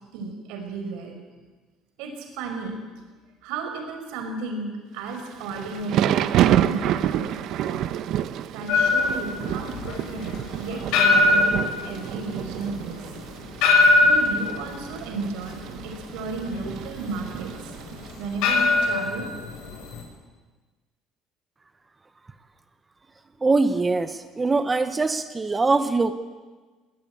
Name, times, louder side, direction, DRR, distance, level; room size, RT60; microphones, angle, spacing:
voice 1, 0.1-1.2 2.0-2.7 3.4-7.3 7.6-7.8 8.5-13.0 14.0-15.5 15.8-17.7 18.2-19.3, right 3 dB, 90° right, 4 dB, 5.2 m, -34 dB
Thunder / Rain, 5.2-18.3, right 11 dB, 50° right, 0.9 m, -28 dB
sound 1, 8.7-20.0, left 3 dB, 75° left, 6.3 m, -22 dB
voice 2, 23.4-26.1, right 3 dB, 15° right, 10 dB, 0.9 m, -22 dB
20.5 x 19.0 x 9.0 m, 1.3 s
cardioid pair, 175°, 0 cm